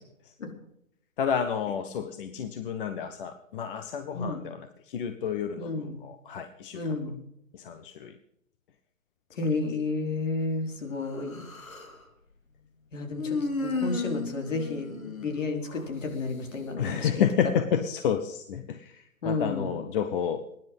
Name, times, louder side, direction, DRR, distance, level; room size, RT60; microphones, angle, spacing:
voice 1, 1.2-7.2 7.5-8.2 16.8-20.4, left 8 dB, 40° left, 7 dB, 1.3 m, -30 dB
voice 2, 4.1-4.4 5.6-6.0 6.7-7.2 9.4-11.5 12.9-17.1 19.2-19.8, left 3 dB, 65° left, 3 dB, 4.5 m, -32 dB
Human voice, 11.0-12.0 13.1-15.9, left 3 dB, 90° left, 3.4 m, -34 dB
22.0 x 10.5 x 5.5 m, 0.77 s
hypercardioid pair, 145°, 40 cm